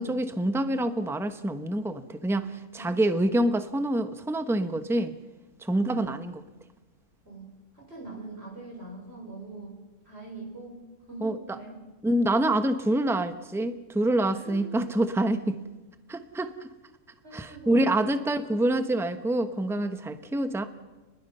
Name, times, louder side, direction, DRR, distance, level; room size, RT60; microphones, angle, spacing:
voice 1, 0.0-5.1 5.6-6.4 11.2-11.4 12.0-15.6 16.1-16.7 17.3-20.6, right 1 dB, ahead, 9 dB, 0.9 m, -26 dB
voice 2, 2.8-3.3 5.7-6.1 7.2-10.8 11.1-11.8 14.4-14.7 17.2-18.3, right 3 dB, 45° right, -1 dB, 6.1 m, -43 dB
29.0 x 21.0 x 5.6 m, 1.2 s
omnidirectional pair, 1.5 m